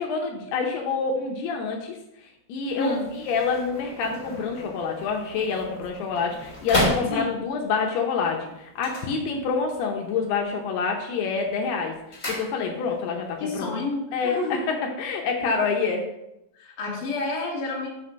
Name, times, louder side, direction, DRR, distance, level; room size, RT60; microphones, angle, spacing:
voice 1, 0.0-12.0 12.3-13.9 14.1-16.0, left 5 dB, 80° left, 1 dB, 2.8 m, -27 dB
sound 1, 2.6-7.6 8.7-9.8 10.1-10.6 11.0-13.0 13.3-13.4, equal, 20° left, 2.4 m, -33 dB
voice 2, 13.4-14.6 16.5-17.9, left 3 dB, 40° left, -4 dB, 2.3 m, -29 dB
6.3 x 5.9 x 6.3 m, 0.87 s
omnidirectional pair, 4.7 m